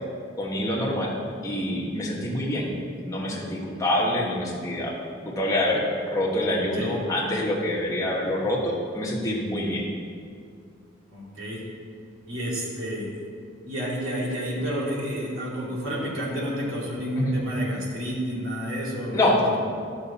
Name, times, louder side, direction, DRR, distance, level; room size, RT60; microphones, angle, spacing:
voice 1, 0.4-1.1 1.4-2.7 3.0-4.9 5.2-9.9 17.2-17.4 19.1-19.4, left 1 dB, 15° left, -4 dB, 1.4 m, -26 dB
voice 2, 11.1-11.6 12.3-13.2 13.6-19.6, equal, 75° right, -5 dB, 2.5 m, -30 dB
12.0 x 6.4 x 4.2 m, 2.3 s
head